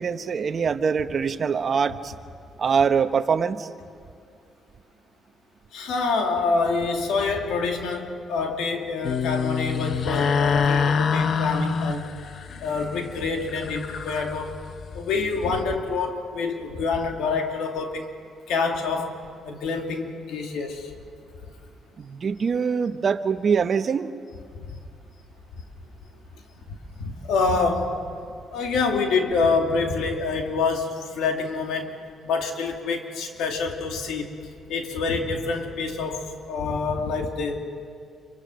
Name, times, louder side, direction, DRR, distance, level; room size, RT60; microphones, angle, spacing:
voice 1, 0.0-2.1 2.6-3.7 22.0-24.1, right 6 dB, 45° right, 9 dB, 1.1 m, -23 dB
voice 2, 5.7-12.2 12.6-14.6 14.9-18.2 18.5-19.2 19.4-20.9 24.6-24.8 27.0-28.0 28.5-32.0 32.2-34.3 34.7-37.6, left 4 dB, 85° left, 3 dB, 2.7 m, -26 dB
sound 1, 9.0-15.6, left 5 dB, 55° left, 0.9 m, -26 dB
27.5 x 24.5 x 6.4 m, 2.3 s
cardioid pair, 90°, 0 cm